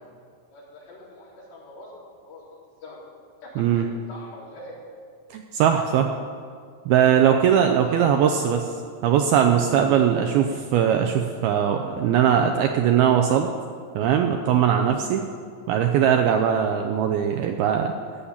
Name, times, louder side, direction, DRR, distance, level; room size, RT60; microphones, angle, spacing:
voice 1, 0.5-2.4 2.8-3.0 3.4-4.8 7.7-8.6, left 1 dB, 55° left, -7 dB, 5.8 m, -42 dB
voice 2, 5.3-6.1 6.9-8.6 9.0-13.5 14.0-15.2 15.7-17.9, right 9 dB, 90° right, 4 dB, 2.2 m, -20 dB
16.0 x 7.2 x 9.7 m, 2.1 s
omnidirectional pair, 5.2 m